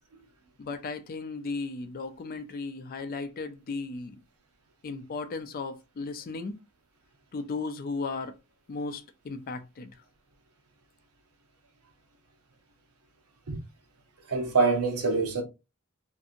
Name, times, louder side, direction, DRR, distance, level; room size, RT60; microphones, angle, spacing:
voice 1, 0.6-4.2 4.8-6.6 7.3-8.3 8.7-9.9, left 3 dB, 40° left, 0.4 m, -35 dB
voice 2, 14.3-15.4, right 3 dB, 90° right, 0.8 m, -25 dB
2.6 x 2.6 x 2.5 m
head